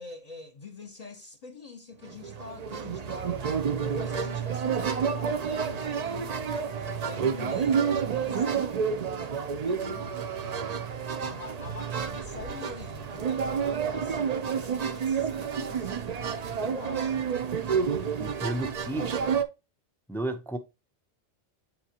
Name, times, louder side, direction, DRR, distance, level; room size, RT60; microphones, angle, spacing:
voice 1, 0.0-3.5 3.8-6.4 6.9-16.1 16.6-17.3, left 3 dB, 40° left, 0.8 m, -45 dB
sound 1, 2.0-19.4, right 6 dB, 50° right, 0.5 m, -29 dB
voice 2, 18.2-19.1 20.1-20.6, right 2 dB, 5° left, 0.3 m, -32 dB
8.2 x 4.3 x 2.8 m
omnidirectional pair, 1.2 m